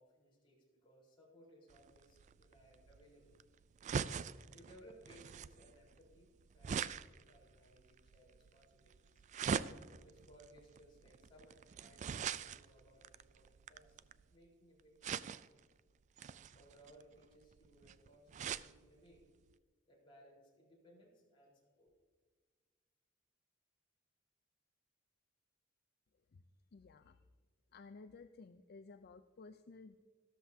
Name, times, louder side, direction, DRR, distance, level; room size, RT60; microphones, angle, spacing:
voice 1, 0.0-3.4 4.5-9.2 10.0-14.0 14.3-15.5 16.5-19.3 19.9-21.9, equal, 25° left, -4 dB, 4.0 m, -64 dB
sound 1, 1.7-14.3 15.0-15.7 16.2-18.7 19.2-19.3 19.5-19.6, right 7 dB, 35° right, 0.3 m, -43 dB
voice 2, 26.7-27.2 27.7-30.0, left 4 dB, 55° left, 9 dB, 0.4 m, -55 dB
14.0 x 13.0 x 2.7 m, 1.5 s
head